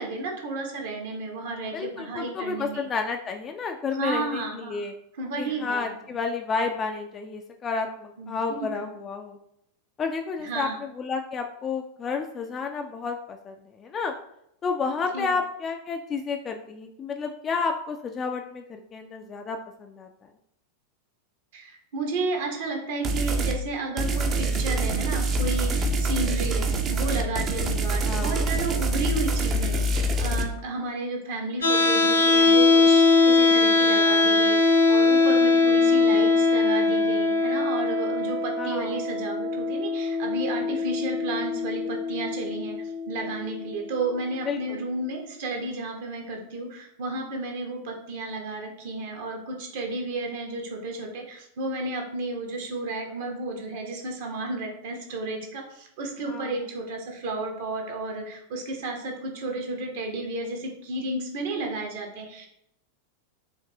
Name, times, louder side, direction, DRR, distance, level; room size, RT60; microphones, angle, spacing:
voice 1, 0.0-2.8 3.9-4.8 5.2-5.9 8.2-8.9 10.4-10.8 15.1-15.3 21.5-62.5, right 2 dB, 55° right, 2 dB, 0.9 m, -32 dB
voice 2, 1.7-4.9 5.4-9.4 10.0-14.1 14.6-20.1 28.0-28.5 38.6-38.9 44.5-44.6 56.3-56.5, left 5 dB, 25° left, 4 dB, 0.3 m, -31 dB
sound 1, 23.0-23.6 24.0-30.4, right 2 dB, 30° right, 0.5 m, -25 dB
sound 2, 31.6-43.6, left 3 dB, 70° left, 0.7 m, -21 dB
4.9 x 2.6 x 2.7 m, 0.76 s
figure-of-eight pair, 90°, 0 cm